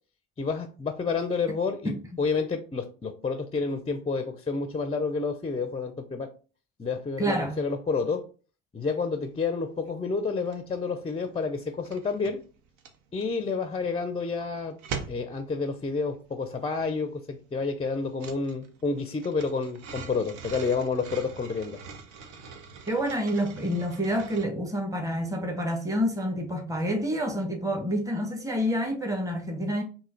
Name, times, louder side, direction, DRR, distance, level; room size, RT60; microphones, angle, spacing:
voice 1, 0.4-6.3 6.8-8.3 8.7-12.4 13.1-14.8 15.1-21.8, left 4 dB, 15° left, 0.6 m, -29 dB
voice 2, 7.2-7.6 22.9-29.8, equal, 10° right, 1.1 m, -28 dB
sound 1, 9.3-9.5 9.8-10.8 11.0-24.4, right 5 dB, 60° right, 0.8 m, -43 dB
3.7 x 2.8 x 4.3 m
hypercardioid pair, 60°, 34 cm